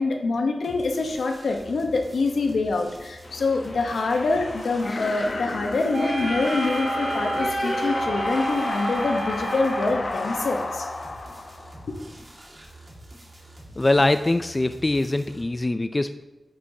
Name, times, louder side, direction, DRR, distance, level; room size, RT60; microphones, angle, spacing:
voice 1, 0.0-10.9, left 3 dB, 90° left, 3 dB, 0.9 m, -25 dB
sound 1, 0.6-15.4, right 1 dB, 55° right, 1.9 m, -46 dB
sound 2, 3.2-12.1, left 2 dB, 60° left, 0.9 m, -31 dB
sound 3, 5.9-10.1, right 3 dB, 70° right, 0.4 m, -31 dB
voice 2, 13.8-16.2, left 2 dB, 35° left, 10 dB, 0.3 m, -23 dB
9.1 x 6.8 x 2.8 m, 1.1 s
cardioid pair, 45°, 0 cm